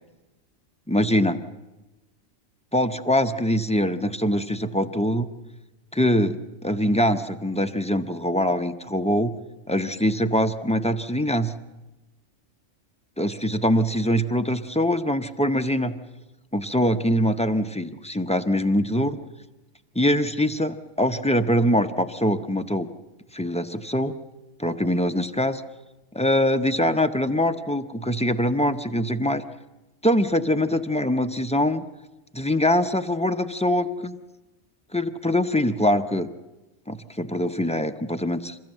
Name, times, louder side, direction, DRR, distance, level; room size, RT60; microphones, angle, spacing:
voice 1, 0.9-1.4 2.7-5.3 5.9-9.3 9.7-11.5 13.2-16.0 16.5-19.2 20.0-22.9 23.3-24.2 24.6-25.6 26.1-29.4 30.0-31.8 32.3-34.2 34.9-36.3 36.9-38.6, equal, 10° left, 7 dB, 0.3 m, -23 dB
27.5 x 14.0 x 7.7 m, 1.1 s
omnidirectional pair, 1.3 m